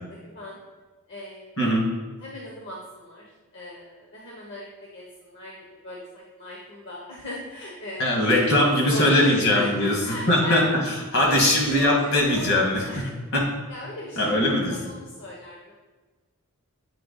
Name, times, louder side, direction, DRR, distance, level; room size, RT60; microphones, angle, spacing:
voice 1, 0.0-0.6 1.1-1.6 2.2-10.7 11.2-12.5 12.9-13.1 13.7-15.7, equal, 50° left, -4 dB, 0.9 m, -37 dB
voice 2, 8.0-10.0 10.3-13.4 14.2-14.8, left 1 dB, 70° left, -1 dB, 1.7 m, -21 dB
8.5 x 3.3 x 4.0 m, 1.3 s
head